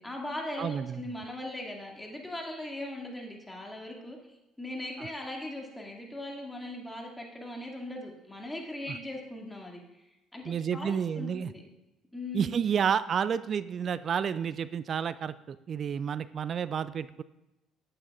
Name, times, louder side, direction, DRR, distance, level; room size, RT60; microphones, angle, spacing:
voice 1, 0.0-4.2 4.6-9.8 10.3-10.4 10.7-11.6 12.1-12.5, left 1 dB, 10° left, -1 dB, 2.2 m, -39 dB
voice 2, 0.6-1.1 5.0-5.1 8.9-9.0 10.4-11.5 12.3-17.2, right 7 dB, 50° right, 16 dB, 0.3 m, -30 dB
12.0 x 8.6 x 2.5 m, 0.96 s
hypercardioid pair, 60°, 0 cm